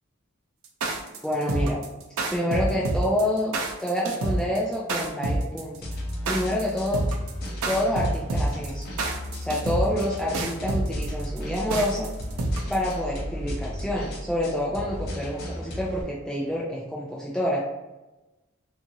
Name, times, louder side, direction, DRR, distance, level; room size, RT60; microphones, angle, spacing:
sound 1, 0.6-12.9, right 2 dB, 80° right, 0.5 m, -27 dB
voice 1, 1.2-1.8 2.3-3.5 3.8-5.9 6.3-7.0 7.7-8.9 9.4-12.1 12.7-17.6, left 1 dB, 5° left, -5 dB, 0.3 m, -27 dB
sound 2, 5.8-16.0, equal, 50° left, 0.6 m, -34 dB
2.8 x 2.4 x 2.7 m, 1.1 s
head